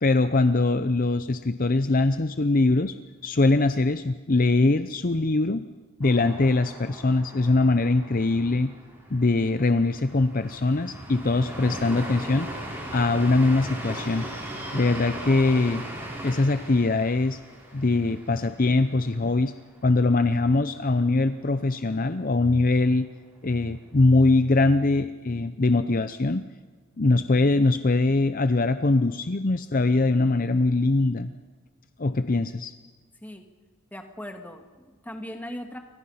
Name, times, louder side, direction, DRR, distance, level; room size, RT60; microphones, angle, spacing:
voice 1, 0.0-3.0 3.2-5.7 6.0-8.7 9.1-12.5 12.9-14.3 14.7-15.8 16.2-17.4 17.7-19.5 19.8-23.1 23.4-26.5 27.0-31.3 32.0-32.7, left 2 dB, 40° left, 11 dB, 0.6 m, -22 dB
sound 1, 6.0-19.7 20.1-20.2 20.5-21.1, right 1 dB, 10° right, 6.4 m, -39 dB
voice 2, 33.9-35.8, equal, 5° left, 5 dB, 2.0 m, -39 dB
29.0 x 24.5 x 5.8 m, 1.4 s
head